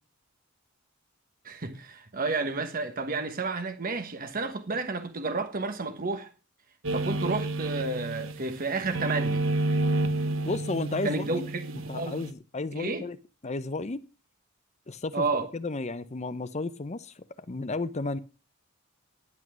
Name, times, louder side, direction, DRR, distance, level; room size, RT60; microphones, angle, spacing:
voice 1, 1.4-6.3 6.9-9.4 11.0-12.2 12.7-13.0 15.1-15.5, right 3 dB, 40° right, 1.2 m, -31 dB
sound 1, 6.8-8.5 8.8-12.3, right 2 dB, 60° right, 1.1 m, -30 dB
voice 2, 10.4-11.5 11.9-13.2 13.4-14.0 14.9-15.3 15.5-18.2, left 3 dB, 30° left, 0.6 m, -33 dB
11.0 x 8.3 x 6.2 m
head